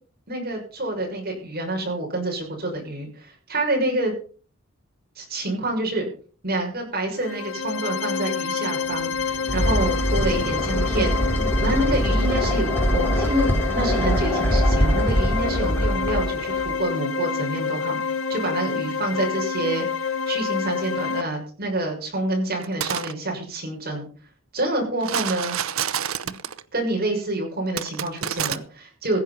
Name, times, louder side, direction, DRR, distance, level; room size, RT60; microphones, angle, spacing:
voice 1, 0.3-4.1 5.2-6.1 6.4-11.1 11.6-18.0 18.3-24.1 24.5-25.6 26.7-29.2, right 1 dB, 50° right, 1 dB, 6.3 m, -27 dB
sound 1, 7.1-21.2, left 5 dB, 70° left, 1.2 m, -27 dB
sound 2, 8.9-16.8, equal, 10° left, 3.8 m, -23 dB
sound 3, 22.6-23.1 25.0-26.6 27.8-28.6, right 9 dB, 85° right, 0.8 m, -28 dB
16.0 x 9.1 x 5.7 m, 0.41 s
head